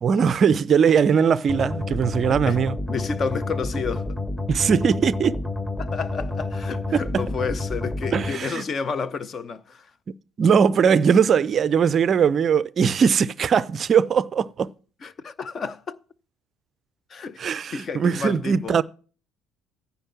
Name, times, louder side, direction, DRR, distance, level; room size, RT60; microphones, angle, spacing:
voice 1, 0.0-2.8 4.5-5.4 6.9-7.2 8.1-8.6 10.4-14.7 17.4-18.8, right 7 dB, 40° right, 0.4 m, -20 dB
sound 1, 1.5-8.3, left 2 dB, 20° left, 2.4 m, -29 dB
voice 2, 2.9-4.2 5.8-9.9 15.0-16.0 17.1-17.4 17.7-18.8, left 5 dB, 35° left, 0.8 m, -30 dB
9.8 x 5.6 x 7.5 m
figure-of-eight pair, 55°, 0 cm